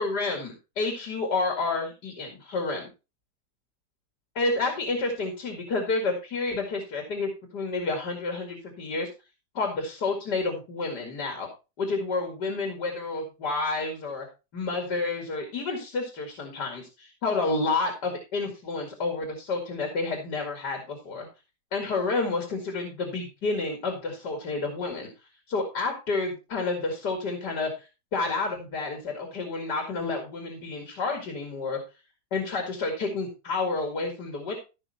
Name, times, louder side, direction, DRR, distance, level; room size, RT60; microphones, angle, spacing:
voice 1, 0.0-2.9 4.3-9.1 9.5-11.5 11.8-14.3 14.5-21.3 21.7-25.1 25.5-31.8 32.3-34.5, left 3 dB, 80° left, 3 dB, 2.8 m, -30 dB
15.0 x 5.9 x 4.3 m, 0.30 s
omnidirectional pair, 1.8 m